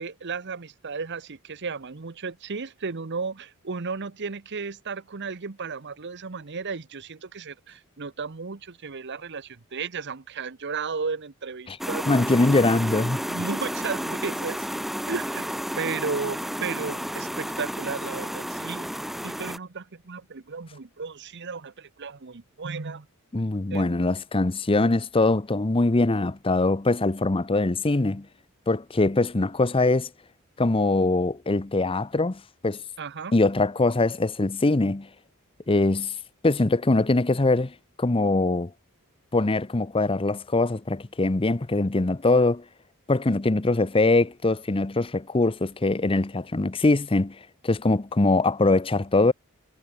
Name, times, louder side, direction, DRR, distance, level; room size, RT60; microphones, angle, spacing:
voice 1, 0.0-12.1 13.3-14.6 15.1-15.5 15.8-18.9 19.2-23.1 23.7-23.8 33.0-33.4, right 5 dB, 55° right, 0.9 m, -34 dB
sound 1, 11.8-19.6, equal, ahead, 1.0 m, -32 dB
voice 2, 12.1-13.2 23.3-28.3 28.7-30.1 30.6-32.8 33.3-35.1 35.7-36.1 36.4-38.7 39.3-42.6 43.1-47.4 47.6-49.3, left 2 dB, 25° left, 0.7 m, -22 dB
head